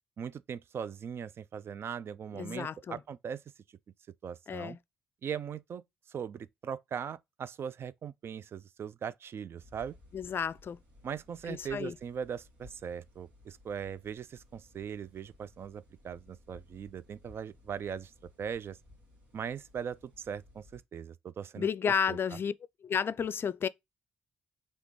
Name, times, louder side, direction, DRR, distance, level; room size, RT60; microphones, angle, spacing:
voice 1, 0.2-3.4 4.2-4.8 5.2-10.0 11.0-18.8 19.3-22.2, right 7 dB, 55° right, 0.4 m, -40 dB
voice 2, 2.3-3.0 4.5-4.8 10.1-10.8 11.5-11.9 21.6-22.5 22.8-23.7, left 7 dB, 50° left, 0.4 m, -32 dB
sound 1, 9.6-20.8, left 2 dB, 90° right, 2.1 m, -59 dB
5.0 x 3.4 x 3.1 m
hypercardioid pair, 45°, 5 cm